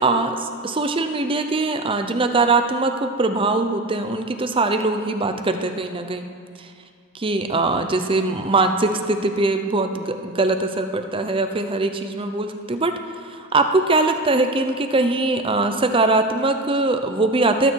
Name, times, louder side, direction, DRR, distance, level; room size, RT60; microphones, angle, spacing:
voice 1, 0.0-6.3 6.6-6.7 7.1-17.7, right 2 dB, 25° right, 7 dB, 0.7 m, -21 dB
21.5 x 9.4 x 4.6 m, 2.2 s
head